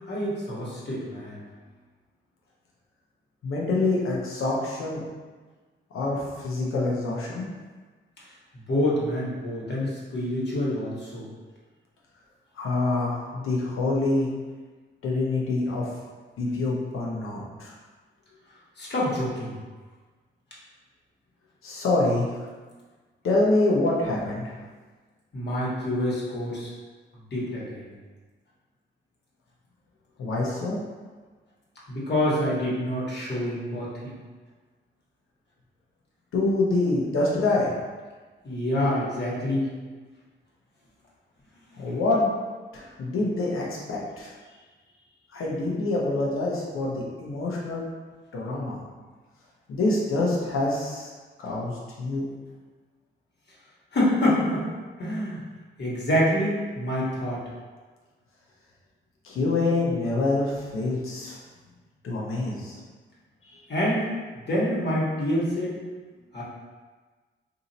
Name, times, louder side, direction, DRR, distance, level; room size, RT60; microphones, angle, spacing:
voice 1, 0.1-1.4 8.7-11.3 18.8-19.6 25.3-26.7 27.3-27.8 31.9-34.1 38.4-39.7 53.9-54.7 55.0-55.4 55.8-57.4 63.7-64.1 64.5-65.8 66.3-66.4, left 1 dB, 55° left, -7 dB, 1.3 m, -26 dB
voice 2, 3.4-5.0 5.9-7.5 12.6-14.3 15.0-15.9 16.4-17.7 21.6-22.3 23.2-24.4 30.2-30.8 36.3-37.7 41.8-42.3 42.7-44.3 45.3-47.8 48.3-48.8 49.7-51.1 51.4-51.7 52.0-52.2 59.2-61.4 62.0-62.8 63.5-63.6, left 2 dB, 85° left, -4 dB, 0.9 m, -26 dB
2.7 x 2.6 x 4.1 m, 1.4 s
cardioid pair, 60°, 21 cm